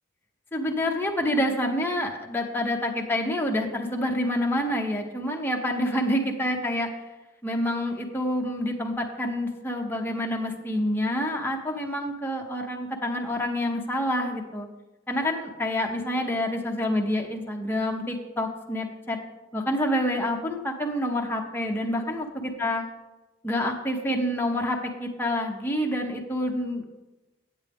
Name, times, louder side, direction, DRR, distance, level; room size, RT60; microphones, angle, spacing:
voice 1, 0.5-6.9 7.4-14.7 15.1-19.2 19.5-22.8 23.4-26.8, left 1 dB, 10° left, 1 dB, 0.7 m, -27 dB
8.8 x 8.2 x 3.5 m, 1.0 s
head